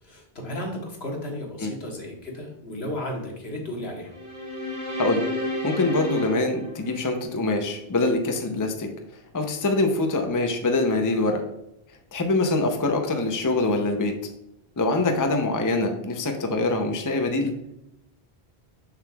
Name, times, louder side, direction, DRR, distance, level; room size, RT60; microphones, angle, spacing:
voice 1, 0.0-4.1, left 1 dB, 75° left, 0 dB, 1.7 m, -34 dB
sound 1, 4.1-7.5, left 1 dB, 15° right, 2.1 m, -32 dB
voice 2, 5.6-8.9 9.3-11.4 12.1-14.1 14.8-17.5, left 2 dB, 25° left, 4 dB, 0.6 m, -24 dB
6.7 x 6.5 x 2.3 m, 0.82 s
omnidirectional pair, 1.1 m